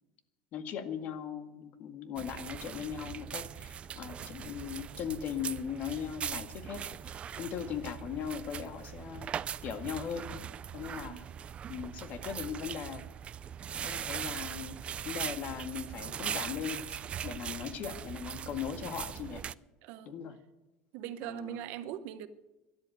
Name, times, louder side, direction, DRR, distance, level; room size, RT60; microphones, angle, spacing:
voice 1, 0.5-9.2 9.6-10.4 10.7-11.3 11.7-13.1 13.7-14.8 15.0-19.4 20.1-20.4 21.2-21.6, left 8 dB, 55° left, 9 dB, 1.9 m, -39 dB
sound 1, 2.2-19.5, right 8 dB, 35° right, 0.4 m, -40 dB
voice 2, 19.8-20.1 20.9-22.3, right 11 dB, 70° right, 12 dB, 1.1 m, -41 dB
13.0 x 11.5 x 9.3 m, 1.1 s
supercardioid pair, 105°, 3 cm